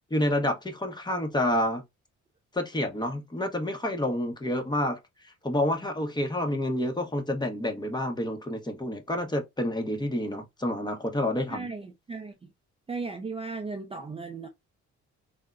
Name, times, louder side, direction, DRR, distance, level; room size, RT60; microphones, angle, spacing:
voice 1, 0.1-1.8 2.5-5.0 5.4-11.7, left 1 dB, 15° left, 0.8 m, -28 dB
voice 2, 11.5-12.4 12.9-14.5, right 4 dB, 20° right, 0.4 m, -36 dB
3.5 x 2.1 x 2.4 m
cardioid pair, 90°, 30 cm